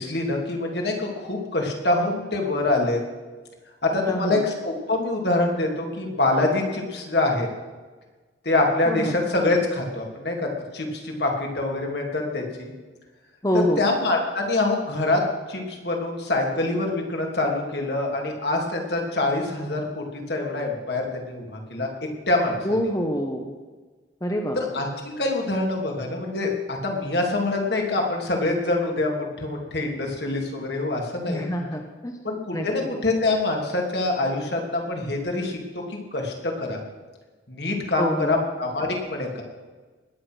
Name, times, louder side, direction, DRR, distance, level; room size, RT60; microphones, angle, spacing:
voice 1, 0.0-3.0 3.8-7.5 8.4-12.7 13.5-15.2 15.5-21.9 22.3-22.6 24.5-31.5 32.2-35.6 35.9-36.8 37.5-39.4, left 2 dB, 65° left, 0 dB, 3.0 m, -25 dB
voice 2, 4.0-4.4 8.9-9.1 13.4-13.8 22.6-23.5 24.2-24.6 31.3-32.1 32.5-32.9 38.0-38.4, equal, 20° left, 3 dB, 1.1 m, -26 dB
20.5 x 8.6 x 6.2 m, 1.3 s
head